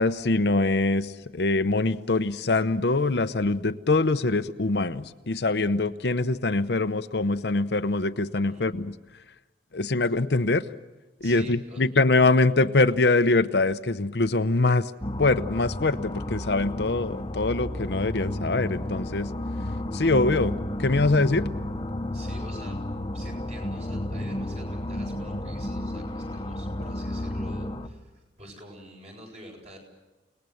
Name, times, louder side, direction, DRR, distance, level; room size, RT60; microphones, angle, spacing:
voice 1, 0.0-8.9 9.7-10.6 11.2-14.9 15.2-19.3 19.9-20.5 20.8-21.5, left 3 dB, 70° left, 10 dB, 0.8 m, -23 dB
voice 2, 11.2-11.8 22.1-22.8 23.1-29.8, equal, 40° right, 1 dB, 7.5 m, -47 dB
sound 1, 15.0-27.9, left 1 dB, 25° left, 1.1 m, -32 dB
29.5 x 19.5 x 7.9 m, 1.1 s
head